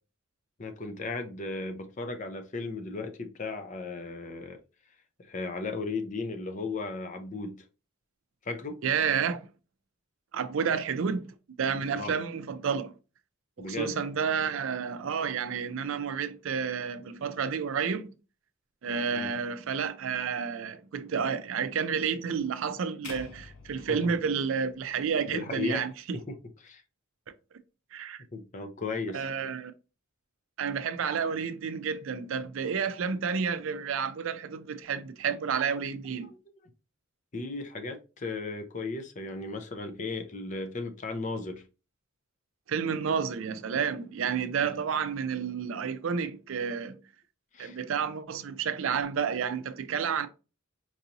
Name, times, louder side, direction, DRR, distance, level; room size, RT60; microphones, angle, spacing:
voice 1, 0.6-4.6 5.2-7.6 8.4-8.8 11.9-12.2 13.6-13.9 19.1-19.3 23.9-24.1 25.3-25.8 26.1-26.8 28.3-29.3 37.3-41.6 47.5-47.8, left 3 dB, 35° left, 0.5 m, -36 dB
voice 2, 8.8-9.5 10.3-12.9 13.6-18.1 18.8-25.9 27.9-28.2 29.1-29.7 30.6-36.3 42.7-47.0 47.6-50.3, right 6 dB, 70° right, 0.4 m, -30 dB
sound 1, 23.0-25.3, left 3 dB, 85° left, 0.8 m, -48 dB
4.6 x 2.6 x 2.8 m
head